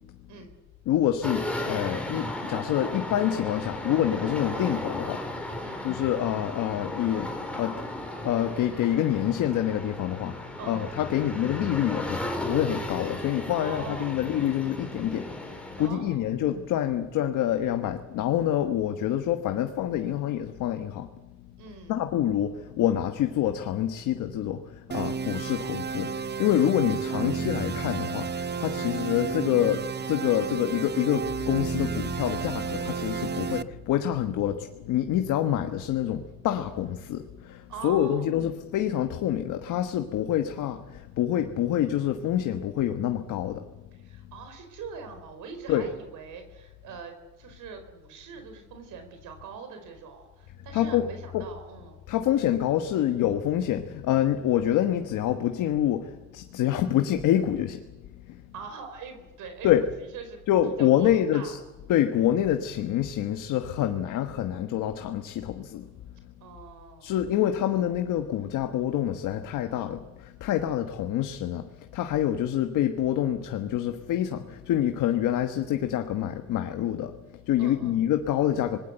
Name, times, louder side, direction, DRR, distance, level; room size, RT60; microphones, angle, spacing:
voice 1, 0.8-5.2 5.8-7.3 7.5-7.8 8.2-21.1 21.9-43.6 45.7-45.9 50.7-51.1 51.3-51.5 52.1-57.8 58.3-58.4 59.6-59.8 60.5-61.6 61.9-65.9 67.0-77.1 77.4-78.8, left 11 dB, 90° left, 7 dB, 1.3 m, -26 dB
sound 1, 1.2-15.9, left 1 dB, 5° left, 4.5 m, -35 dB
voice 2, 10.6-10.9 13.6-14.2 15.8-16.3 21.6-22.1 33.3-33.6 37.7-38.3 43.9-52.0 58.5-61.6 66.4-67.2 77.6-78.0, right 5 dB, 85° right, 7 dB, 4.5 m, -43 dB
sound 2, 24.9-33.6, right 6 dB, 35° right, 0.9 m, -32 dB
sound 3, 31.2-42.5, left 6 dB, 70° left, 3.8 m, -48 dB
26.0 x 20.5 x 8.1 m, 1.1 s
cardioid pair, 90°, 30 cm